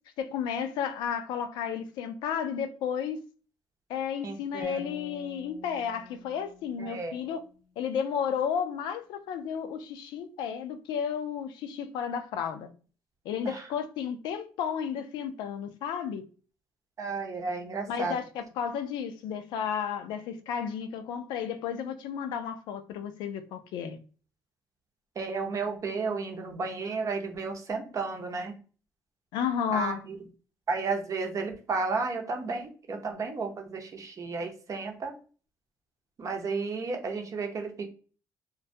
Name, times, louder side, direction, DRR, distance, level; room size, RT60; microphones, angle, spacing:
voice 1, 0.2-3.2 3.9-7.4 7.8-12.7 13.3-16.3 17.9-24.0 29.3-30.0, left 7 dB, 80° left, 0.4 m, -32 dB
voice 2, 4.2-4.8 6.8-7.2 13.4-13.7 17.0-18.2 25.2-28.5 29.7-30.2 30.7-35.1 36.2-37.9, right 4 dB, 45° right, 0.7 m, -33 dB
sound 1, 4.6-7.8, left 3 dB, 10° left, 0.5 m, -49 dB
2.2 x 2.2 x 2.6 m
supercardioid pair, 70°, 8 cm